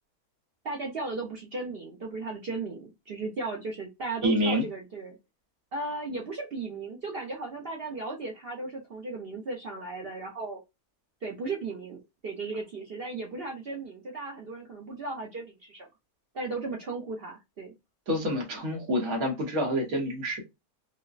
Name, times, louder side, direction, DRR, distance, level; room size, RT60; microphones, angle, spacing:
voice 1, 0.6-5.2 5.7-10.6 11.2-15.9 16.3-17.7, right 3 dB, 50° right, 0.8 m, -36 dB
voice 2, 4.2-4.6 18.1-20.4, equal, 75° right, 1.6 m, -27 dB
5.0 x 2.1 x 2.4 m
omnidirectional pair, 1.6 m